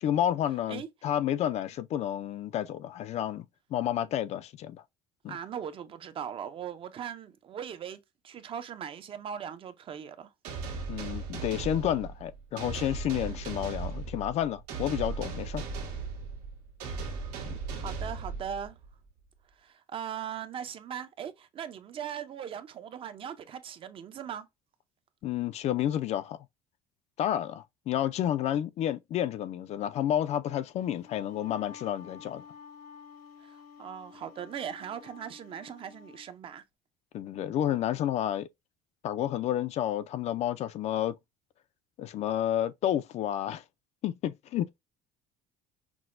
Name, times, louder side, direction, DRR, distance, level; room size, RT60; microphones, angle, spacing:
voice 1, 0.0-3.4 3.7-4.8 5.2-5.4 10.9-15.6 17.5-17.6 25.2-26.4 27.2-32.4 37.1-38.5 39.0-41.2 42.0-43.6 44.0-44.8, left 11 dB, 45° left, 0.4 m, -30 dB
voice 2, 5.3-10.3 17.8-18.8 19.6-24.5 33.4-36.6, right 8 dB, 35° right, 0.5 m, -39 dB
sound 1, 10.4-18.9, right 4 dB, 90° right, 1.4 m, -37 dB
Wind instrument woodwind instrument, 30.8-36.3, left 6 dB, 70° left, 0.9 m, -50 dB
5.9 x 2.1 x 2.4 m
cardioid pair, 145°, 16 cm